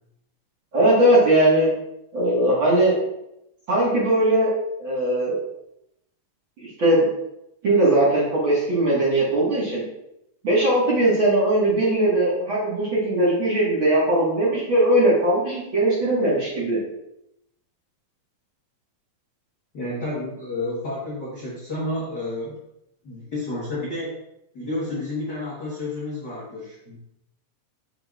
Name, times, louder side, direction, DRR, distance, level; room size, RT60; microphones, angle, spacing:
voice 1, 0.7-1.7 2.1-3.0 3.7-4.5 4.8-5.3 6.6-7.1 7.6-9.8 10.4-16.8, right 1 dB, 45° right, -7 dB, 2.0 m, -19 dB
voice 2, 19.7-22.6 23.0-24.2 24.5-27.0, left 2 dB, 50° left, -8 dB, 1.3 m, -30 dB
6.4 x 6.4 x 2.5 m, 0.84 s
omnidirectional pair, 3.9 m